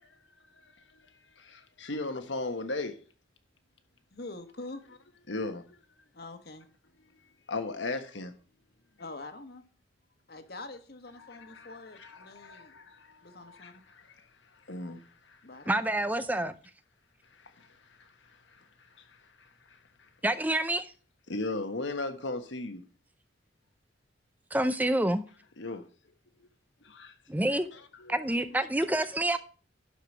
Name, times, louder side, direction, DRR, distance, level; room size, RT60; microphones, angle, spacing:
voice 1, 0.5-3.0 5.3-5.8 7.5-8.3 11.2-15.4 17.3-20.1 21.3-22.8 25.6-25.9 26.8-27.1 27.5-28.2, left 2 dB, 90° left, 1.4 m, -38 dB
voice 2, 4.1-4.8 6.1-6.7 9.0-9.6 10.3-12.8 13.2-13.8 15.4-15.9, left 2 dB, 55° left, 1.3 m, -45 dB
voice 3, 15.7-16.5 20.2-20.9 24.5-25.2 27.3-27.7 28.1-29.4, right 1 dB, 10° right, 0.5 m, -27 dB
11.5 x 5.0 x 6.0 m
head